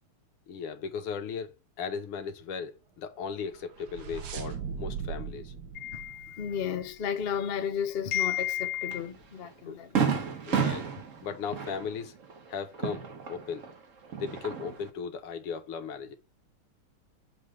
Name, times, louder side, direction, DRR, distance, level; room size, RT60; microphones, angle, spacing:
voice 1, 0.5-5.5 9.7-9.8 10.5-10.9 11.2-12.2 12.5-13.7 14.2-16.2, left 6 dB, 85° left, 2.0 m, -37 dB
sound 1, 3.4-7.0, right 6 dB, 60° right, 1.2 m, -39 dB
voice 2, 5.7-9.9, left 9 dB, 65° left, 0.6 m, -32 dB
Fireworks, 8.9-9.0 9.5-9.6 10.0-13.7 14.0-14.9, right 7 dB, 45° right, 1.2 m, -31 dB
7.6 x 3.2 x 5.1 m
omnidirectional pair, 2.4 m